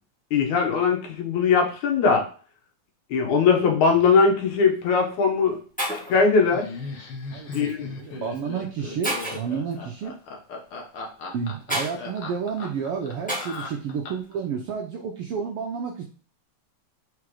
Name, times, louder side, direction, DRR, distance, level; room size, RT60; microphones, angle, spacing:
voice 1, 0.3-2.2 3.1-5.6 5.9-6.7 7.5-7.9, left 5 dB, 75° left, 2 dB, 2.7 m, -20 dB
Shatter, 4.5-4.8 5.5-5.6 5.8-6.2 7.5-7.7 8.3-8.4 9.0-9.5 11.7-12.0 13.3-13.7, right 1 dB, 5° left, 0.6 m, -30 dB
Laughter, 6.5-14.4, left 4 dB, 55° left, 1.8 m, -37 dB
voice 2, 7.9-10.1 11.3-16.0, right 6 dB, 75° right, 2 dB, 1.3 m, -30 dB
4.9 x 4.9 x 4.8 m, 0.40 s
omnidirectional pair, 3.5 m